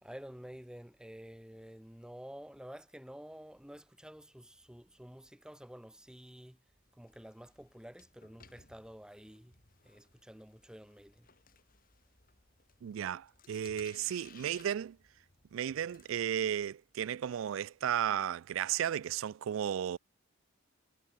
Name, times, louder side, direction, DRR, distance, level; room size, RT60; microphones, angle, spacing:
voice 1, 0.0-6.6 6.9-9.5 9.8-11.3, equal, 5° right, 0.6 m, -50 dB
old phone, 6.9-16.2, left 5 dB, 40° left, 4.7 m, -62 dB
voice 2, 12.8-15.0 15.5-20.0, right 9 dB, 65° right, 0.3 m, -34 dB
head